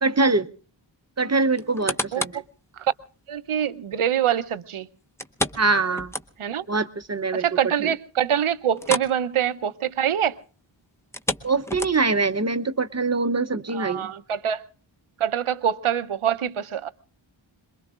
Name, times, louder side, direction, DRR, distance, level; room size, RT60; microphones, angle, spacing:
voice 1, 0.0-0.5 1.2-2.4 5.6-6.1 6.7-7.5 7.8-7.9 11.4-14.1, right 3 dB, 35° right, 0.7 m, -23 dB
sound 1, 1.6-2.5 3.0-3.1 5.2-6.7 7.0-7.1 7.5-7.6 8.8-9.2 9.5-9.7 11.0-12.3 12.9-13.0, left 1 dB, 5° left, 0.7 m, -30 dB
voice 2, 3.3-4.9 6.4-6.6 7.4-10.4 13.7-14.6 15.2-16.9, right 9 dB, 85° right, 0.7 m, -24 dB
26.5 x 21.5 x 2.4 m
wide cardioid pair, 75°, 49 cm